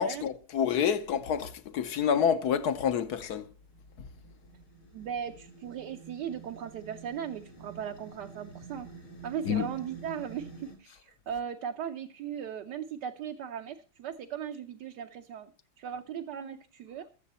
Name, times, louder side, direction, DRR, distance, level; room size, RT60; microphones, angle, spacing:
voice 1, 0.0-3.4 9.5-9.7, left 8 dB, 60° left, 1.2 m, -28 dB
sound 1, 3.6-10.7, right 5 dB, 80° left, 5.1 m, -49 dB
voice 2, 4.9-8.9 9.2-15.5 15.8-17.1, right 8 dB, 65° right, 1.3 m, -38 dB
22.0 x 7.6 x 4.2 m
omnidirectional pair, 2.2 m